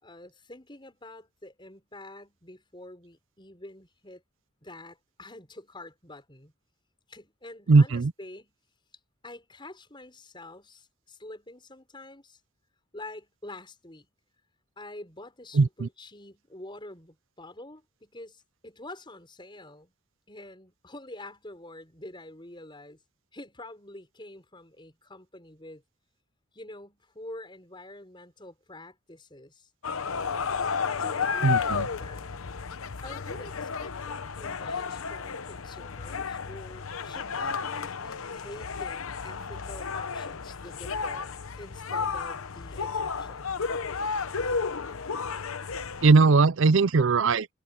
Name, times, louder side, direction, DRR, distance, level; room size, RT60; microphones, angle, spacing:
voice 1, 0.0-4.2 4.6-6.5 7.1-8.5 9.2-12.4 12.9-14.1 14.8-19.9 20.3-23.0 23.3-25.8 26.5-29.7 31.0-32.3 33.0-41.3 41.6-43.6, left 1 dB, 20° left, 5.7 m, -46 dB
voice 2, 7.7-8.1 15.5-15.9 31.4-31.9 46.0-47.5, right 4 dB, 65° right, 0.5 m, -19 dB
sound 1, 29.8-46.1, left 5 dB, 80° left, 0.9 m, -32 dB
head